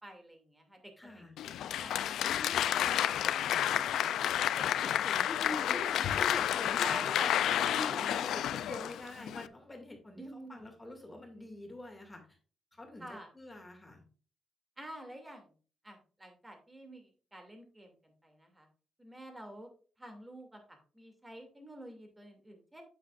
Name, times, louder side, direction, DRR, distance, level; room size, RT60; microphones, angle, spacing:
voice 1, 0.0-2.2 2.7-4.3 4.6-4.7 6.8-7.9 10.2-10.6 13.0-13.3 14.8-15.5 15.8-18.7 19.0-19.7 20.0-22.8, right 1 dB, 15° right, 4 dB, 2.5 m, -48 dB
voice 2, 1.0-1.4 2.3-3.0 3.6-7.1 7.6-12.3 12.7-14.0, left 1 dB, 15° left, 2 dB, 2.2 m, -45 dB
Applause, 1.4-9.5, left 11 dB, 85° left, 0.4 m, -30 dB
8.6 x 8.0 x 2.5 m, 0.38 s
cardioid pair, 110°, 0 cm